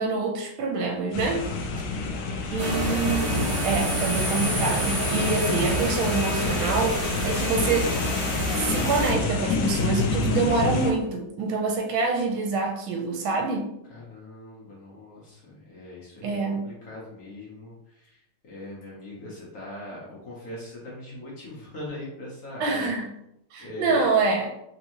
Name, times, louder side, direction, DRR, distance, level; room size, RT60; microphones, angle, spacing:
voice 1, 0.0-1.4 2.5-7.9 8.5-13.7 16.2-16.7 22.6-23.1 23.5-24.5, right 4 dB, 85° right, 2 dB, 1.4 m, -26 dB
sound 1, 1.1-10.9, left 3 dB, 75° left, 1.0 m, -28 dB
voice 2, 1.4-2.6 13.9-22.9 23.6-24.1, left 1 dB, 55° left, -5 dB, 1.3 m, -41 dB
sound 2, 2.6-9.1, equal, 50° right, 1.5 m, -28 dB
3.6 x 2.9 x 2.7 m, 0.81 s
omnidirectional pair, 2.2 m